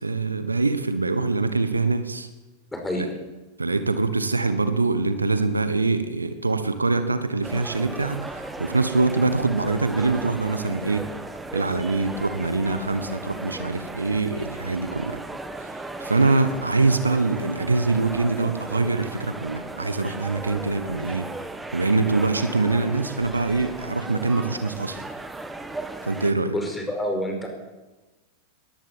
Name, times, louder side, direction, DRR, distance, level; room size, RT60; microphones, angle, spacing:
voice 1, 0.0-2.3 2.9-3.1 3.6-11.1 11.5-15.2 16.0-21.3 21.7-25.0 26.0-26.6, right 3 dB, 80° right, 11 dB, 1.4 m, -24 dB
voice 2, 2.7-3.0 26.5-27.5, equal, 10° left, 3 dB, 5.0 m, -28 dB
sound 1, 7.4-26.3, right 2 dB, 10° right, 1.8 m, -36 dB
21.5 x 17.0 x 7.3 m, 1.1 s
figure-of-eight pair, 90°, 0 cm